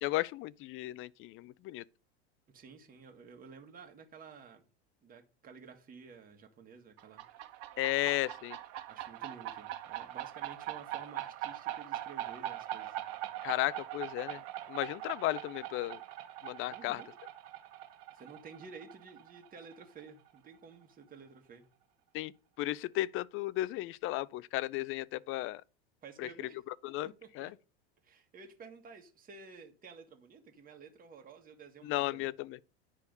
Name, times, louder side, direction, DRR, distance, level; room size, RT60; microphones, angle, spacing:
voice 1, 0.0-1.8 7.8-8.6 13.4-14.4 14.7-16.0 16.4-17.0 22.1-22.3 22.6-25.6 26.2-26.3 26.8-27.5 31.8-32.6, left 17 dB, 40° left, 0.5 m, -34 dB
voice 2, 2.5-4.6 5.0-8.3 8.9-13.0 16.7-17.1 18.1-21.6 26.0-26.6 27.0-27.5 28.0-32.3, right 5 dB, 25° right, 1.8 m, -52 dB
sound 1, 7.0-20.4, right 13 dB, 50° right, 1.6 m, -42 dB
10.0 x 5.0 x 5.3 m
hypercardioid pair, 95°, 33 cm